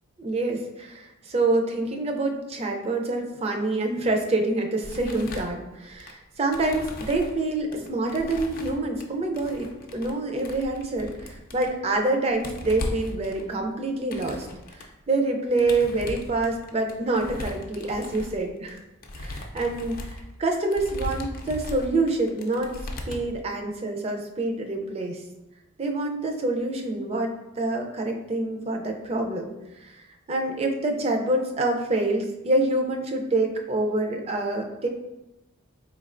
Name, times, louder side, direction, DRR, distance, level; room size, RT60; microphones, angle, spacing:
voice 1, 0.2-14.5 14.8-18.8 19.2-22.7 23.1-25.2 25.8-29.5 29.8-34.9, right 2 dB, 30° right, 3 dB, 0.4 m, -26 dB
sound 1, 4.8-6.1 6.5-7.4 7.7-9.0 9.3-10.1 10.4-12.0 12.3-14.8 15.5-23.4, left 1 dB, 45° left, 0.4 m, -37 dB
4.4 x 3.2 x 2.5 m, 0.97 s
head